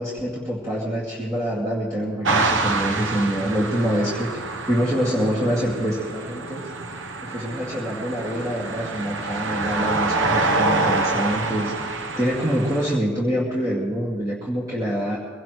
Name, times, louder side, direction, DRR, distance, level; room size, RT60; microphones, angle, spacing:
voice 1, 0.0-6.7 7.2-15.2, equal, 15° right, -6 dB, 2.2 m, -25 dB
sound 1, 2.2-13.0, right 3 dB, 70° right, 1.0 m, -26 dB
23.0 x 18.0 x 3.1 m, 2.1 s
head